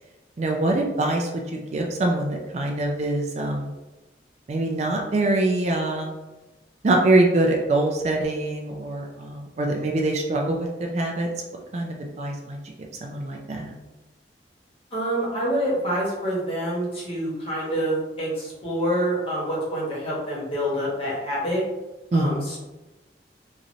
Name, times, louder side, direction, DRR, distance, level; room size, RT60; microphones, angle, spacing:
voice 1, 0.4-3.7 4.5-6.1 6.8-11.3 11.7-12.6 13.0-13.7 22.1-22.5, right 2 dB, 40° right, 1 dB, 0.3 m, -24 dB
voice 2, 14.9-21.6 22.1-22.6, equal, 30° left, -6 dB, 1.0 m, -26 dB
3.0 x 2.6 x 2.6 m, 1.1 s
head